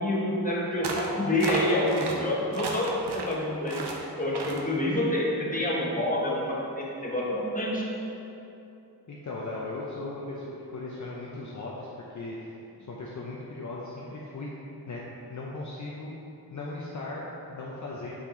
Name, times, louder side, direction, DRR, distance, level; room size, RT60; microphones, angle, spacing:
voice 1, 0.0-7.9, left 1 dB, 20° left, -5 dB, 1.3 m, -28 dB
sound 1, 0.8-1.1 1.4-2.2 2.5-3.3 3.7-4.0 4.3-4.6, right 4 dB, 75° right, 0.8 m, -33 dB
voice 2, 9.1-12.5 12.9-14.5 14.9-15.0 15.3-16.2 16.5-18.2, left 2 dB, 45° left, -4 dB, 0.7 m, -37 dB
6.6 x 5.8 x 3.8 m, 2.8 s
wide cardioid pair, 130°, 40 cm